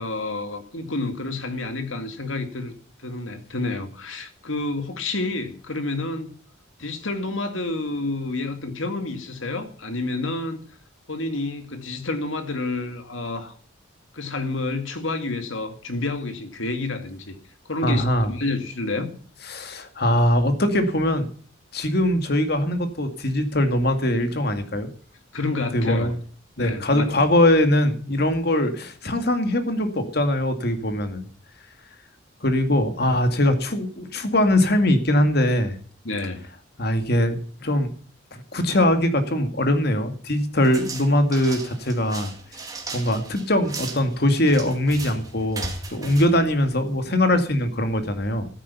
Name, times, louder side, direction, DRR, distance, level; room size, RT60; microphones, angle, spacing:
voice 1, 0.0-2.7 3.0-6.3 6.8-10.6 11.1-13.5 14.1-17.3 17.7-19.1 25.3-26.1 26.6-27.1 36.0-36.4, left 2 dB, 80° left, 2.3 m, -29 dB
voice 2, 17.8-18.3 19.5-21.3 21.7-24.9 25.7-26.1 26.6-31.3 32.4-35.8 36.8-37.9 38.3-42.3 42.9-48.5, left 1 dB, 55° left, 2.2 m, -21 dB
sound 1, 40.6-47.2, right 3 dB, 20° right, 2.3 m, -37 dB
13.0 x 10.0 x 7.0 m
head